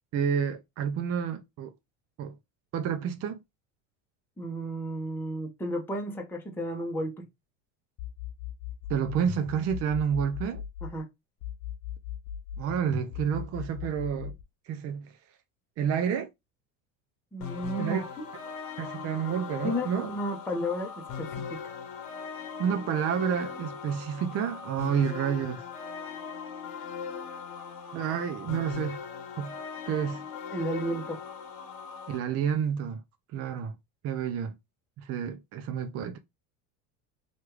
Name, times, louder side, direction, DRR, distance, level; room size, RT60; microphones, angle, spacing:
voice 1, 0.1-1.7 2.2-2.3 2.7-3.4 8.9-10.6 12.6-14.3 14.7-15.1 15.8-16.3 17.8-18.0 18.8-20.1 22.6-25.6 27.9-29.0 29.4-29.5 29.9-30.2 32.1-33.0 33.3-33.8 34.0-34.6 35.0-36.2, right 8 dB, 35° right, 0.5 m, -29 dB
voice 2, 4.4-7.2 10.8-11.1 17.3-18.3 19.6-21.6 30.5-31.2, equal, 5° left, 0.8 m, -33 dB
sound 1, 8.0-11.0 11.4-14.4, left 10 dB, 50° left, 0.6 m, -38 dB
sound 2, 17.4-32.2, left 6 dB, 75° left, 1.0 m, -39 dB
3.1 x 2.4 x 3.1 m
supercardioid pair, 95°, 41 cm